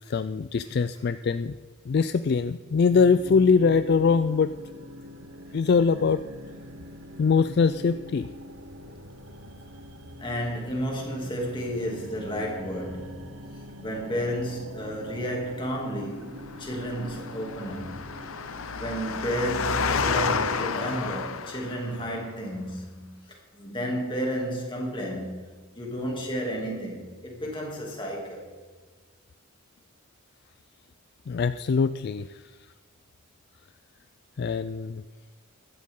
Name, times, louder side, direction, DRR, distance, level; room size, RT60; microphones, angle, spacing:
voice 1, 0.1-1.5 1.9-4.5 5.5-6.2 7.2-8.3 31.3-32.4 34.4-35.0, left 5 dB, 50° left, 0.3 m, -22 dB
sound 1, 2.9-20.4, equal, 75° right, 1.3 m, -44 dB
voice 2, 10.2-13.4 13.8-17.9 18.7-28.5, equal, 25° left, 2.7 m, -32 dB
Engine, 16.4-22.1, left 5 dB, 80° left, 0.7 m, -30 dB
15.5 x 11.5 x 3.8 m
head